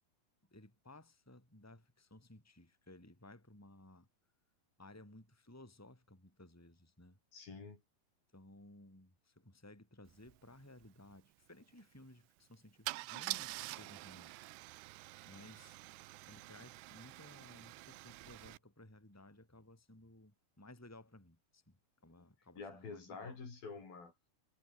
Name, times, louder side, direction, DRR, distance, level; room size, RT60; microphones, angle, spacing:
voice 1, 0.5-4.1 4.8-7.2 8.3-14.4 15.2-15.8 16.2-23.4, left 1 dB, 5° left, 4.9 m, -58 dB
voice 2, 7.3-7.8 22.6-24.1, left 4 dB, 60° left, 7.6 m, -48 dB
Car / Engine starting / Idling, 10.2-10.3 10.6-10.9 12.9-18.6, right 21 dB, 85° right, 2.8 m, -46 dB
omnidirectional pair, 4.7 m